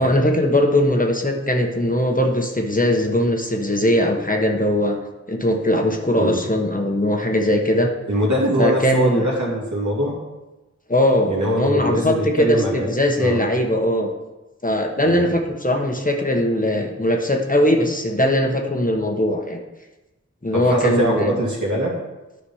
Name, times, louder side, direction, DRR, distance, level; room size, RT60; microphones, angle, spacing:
voice 1, 0.0-5.0 5.3-7.9 8.6-9.3 10.9-14.1 14.6-19.6 20.4-21.4, left 1 dB, 30° left, 2 dB, 1.3 m, -20 dB
voice 2, 8.1-10.1 11.3-13.4 15.0-15.3 20.5-21.9, right 1 dB, 80° right, -4 dB, 2.6 m, -22 dB
10.0 x 5.0 x 5.6 m, 1.1 s
wide cardioid pair, 45°, 29 cm